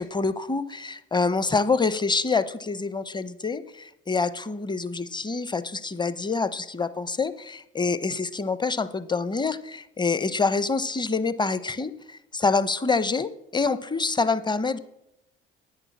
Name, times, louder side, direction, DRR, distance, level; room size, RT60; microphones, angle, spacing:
voice 1, 0.0-14.8, left 4 dB, 15° left, 15 dB, 0.9 m, -26 dB
9.9 x 9.2 x 7.3 m, 0.85 s
hypercardioid pair, 65°, 29 cm